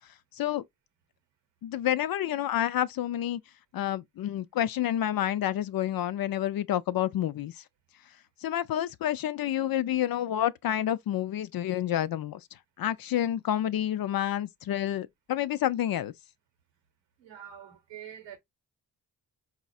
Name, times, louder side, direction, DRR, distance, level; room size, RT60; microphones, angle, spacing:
voice 1, 1.6-3.4 3.7-7.5 8.4-12.4 12.8-16.1, left 11 dB, 55° left, 0.5 m, -29 dB
voice 2, 17.2-18.4, right 10 dB, 85° right, 1.1 m, -45 dB
4.2 x 2.4 x 2.3 m
supercardioid pair, 50°, 43 cm